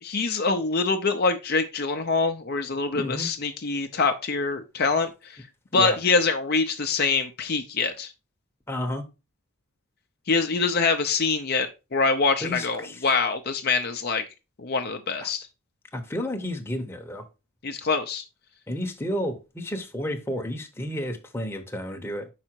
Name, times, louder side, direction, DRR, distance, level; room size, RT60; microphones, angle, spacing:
voice 1, 0.0-5.4 5.7-8.1 10.3-14.2 14.6-15.5 17.6-18.2, left 4 dB, 45° left, 0.6 m, -25 dB
voice 2, 2.9-3.3 5.7-6.0 8.7-9.0 12.4-13.1 15.2-15.3 15.9-17.2 18.7-22.3, left 1 dB, 10° left, 0.9 m, -31 dB
5.4 x 4.9 x 4.5 m
head